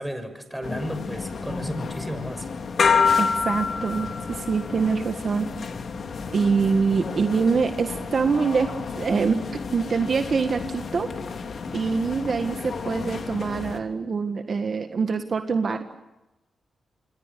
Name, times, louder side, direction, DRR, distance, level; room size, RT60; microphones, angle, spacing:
voice 1, 0.0-2.5, equal, 5° right, 8 dB, 6.5 m, -33 dB
sound 1, 0.6-13.8, left 5 dB, 65° left, 3.1 m, -29 dB
voice 2, 3.2-5.5 6.3-9.4 9.7-11.1 11.7-15.9, right 5 dB, 60° right, 7 dB, 1.6 m, -24 dB
28.5 x 24.0 x 6.8 m, 0.97 s
cardioid pair, 55°, 0 cm